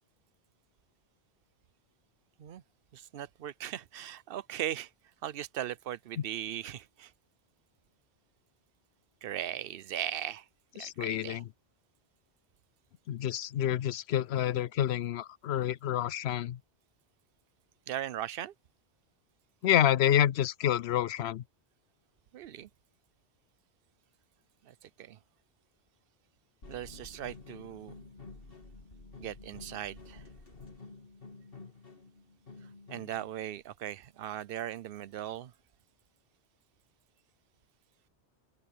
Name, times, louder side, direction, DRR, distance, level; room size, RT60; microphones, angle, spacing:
voice 1, 2.9-4.9 5.2-7.1 9.2-10.4 10.7-11.4 17.9-18.5 22.3-22.7 24.7-25.2 26.7-27.9 29.2-30.2 32.9-35.5, right 11 dB, 60° right, 0.8 m, -38 dB
voice 2, 10.8-11.4 13.1-16.6 19.6-21.4, left 11 dB, 75° left, 0.8 m, -28 dB
sound 1, 26.6-33.3, left 3 dB, 55° left, 3.0 m, -50 dB
open air
omnidirectional pair, 1.1 m